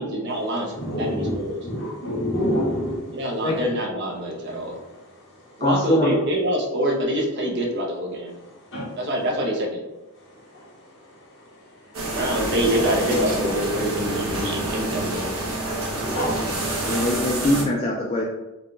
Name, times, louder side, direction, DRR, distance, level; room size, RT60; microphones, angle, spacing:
voice 1, 0.0-1.6 3.1-4.8 5.6-8.3 9.0-9.8 12.1-15.3, equal, 50° right, -1 dB, 0.7 m, -25 dB
voice 2, 0.7-1.4 1.6-3.1 8.7-8.9 10.5-10.6 12.7-13.0 16.0-16.5, equal, 60° left, -5 dB, 1.2 m, -26 dB
voice 3, 5.6-6.1 16.9-18.2, left 1 dB, 25° left, -2 dB, 0.3 m, -22 dB
sound 1, 11.9-17.6, right 2 dB, 75° right, 1.0 m, -27 dB
4.0 x 2.3 x 3.2 m, 1.0 s
head